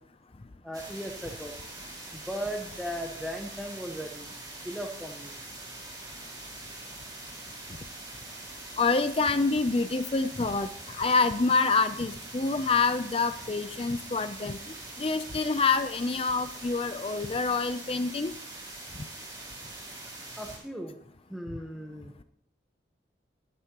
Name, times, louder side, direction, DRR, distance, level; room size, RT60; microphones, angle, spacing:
voice 1, 0.6-1.5 2.1-4.3 4.6-5.3 20.3-21.0 21.3-22.2, equal, ahead, 1 dB, 1.1 m, -37 dB
sound 1, 0.7-20.6, right 2 dB, 20° right, 4.4 m, -43 dB
voice 2, 8.8-14.6 15.0-18.3, left 4 dB, 30° left, 10 dB, 0.5 m, -27 dB
22.5 x 10.5 x 3.0 m, 0.65 s
head